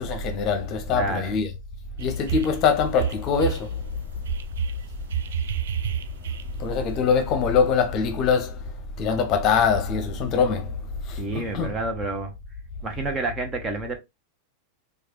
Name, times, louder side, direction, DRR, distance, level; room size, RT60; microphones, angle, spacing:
voice 1, 0.0-1.5 2.0-3.8 6.6-8.6 9.0-10.7 11.1-11.7, left 6 dB, 35° left, 0.9 m, -23 dB
voice 2, 0.9-1.3 11.2-12.3 12.8-14.0, right 2 dB, 25° right, 1.0 m, -29 dB
sound 1, 2.0-2.6 2.9-3.7 4.3-6.8, right 11 dB, 60° right, 0.3 m, -29 dB
4.8 x 2.5 x 3.0 m
figure-of-eight pair, 90°, 0 cm